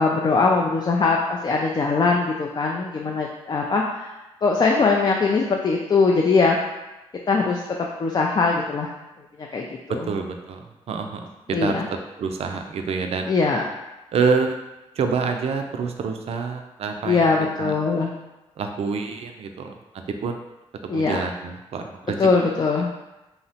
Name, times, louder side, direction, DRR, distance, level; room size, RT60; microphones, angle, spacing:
voice 1, 0.0-4.1 4.4-6.6 7.3-7.6 8.0-8.9 9.5-10.1 11.5-11.9 13.3-13.6 17.0-18.1 20.9-21.2 22.2-22.9, left 4 dB, 40° left, -1 dB, 0.3 m, -21 dB
voice 2, 9.9-11.7 12.2-13.3 14.1-14.6 15.0-17.3 17.6-17.7 18.6-20.4 20.8-22.3, right 5 dB, 65° right, 5 dB, 0.3 m, -27 dB
2.8 x 2.0 x 2.7 m, 1.0 s
supercardioid pair, 50°, 11 cm